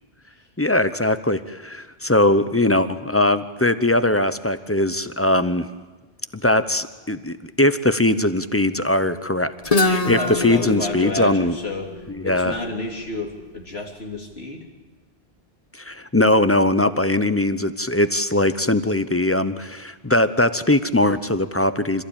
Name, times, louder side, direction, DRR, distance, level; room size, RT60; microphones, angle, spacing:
voice 1, 0.6-5.7 6.3-11.6 12.1-12.6 15.7-22.0, left 1 dB, 15° left, 12 dB, 0.7 m, -20 dB
Guitar, 9.6-13.4, left 2 dB, 35° left, 1.4 m, -26 dB
voice 2, 10.0-12.0 12.2-14.7, left 2 dB, 75° left, 0 dB, 3.5 m, -30 dB
26.5 x 15.0 x 8.8 m, 1.2 s
omnidirectional pair, 1.1 m